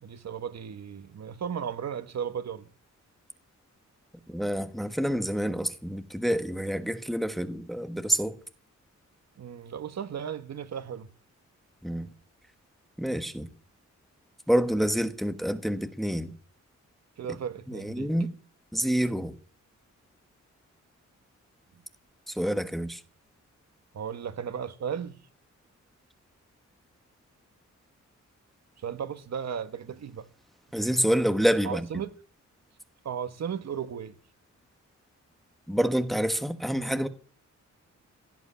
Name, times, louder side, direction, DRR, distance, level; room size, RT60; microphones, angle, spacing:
voice 1, 0.0-2.7 9.4-11.1 17.2-18.1 23.9-25.2 28.8-30.3 31.6-32.1 33.0-34.1, right 8 dB, 60° right, 1.3 m, -35 dB
voice 2, 4.3-8.4 11.8-12.1 13.0-13.5 14.5-16.3 17.7-18.3 18.7-19.3 22.3-23.0 30.7-32.0 35.7-37.1, equal, ahead, 1.2 m, -27 dB
17.0 x 8.1 x 8.5 m
wide cardioid pair, 150°, 30 cm